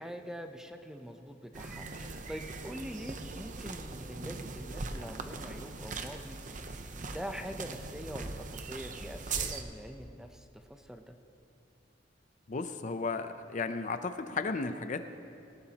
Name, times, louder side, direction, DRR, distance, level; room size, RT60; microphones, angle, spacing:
voice 1, 0.0-6.6 7.0-11.1, equal, 5° right, 6 dB, 0.6 m, -44 dB
sound 1, 1.5-9.6, right 4 dB, 45° right, 0.7 m, -40 dB
voice 2, 12.5-15.0, left 4 dB, 40° left, 9 dB, 0.5 m, -34 dB
19.0 x 18.0 x 2.9 m, 2.6 s
head